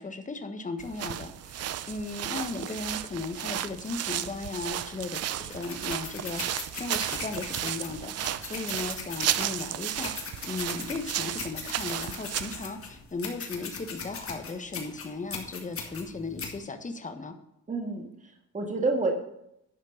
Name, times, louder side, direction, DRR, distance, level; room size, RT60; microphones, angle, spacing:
voice 1, 0.0-17.4, left 3 dB, 25° left, 7 dB, 1.3 m, -36 dB
sound 1, 0.8-12.7, right 11 dB, 55° right, 0.6 m, -34 dB
sound 2, 5.5-16.5, left 5 dB, 45° left, 2.2 m, -40 dB
voice 2, 17.7-19.1, right 3 dB, 25° right, 3 dB, 1.7 m, -29 dB
11.0 x 5.2 x 6.5 m, 0.80 s
cardioid pair, 90°, 30 cm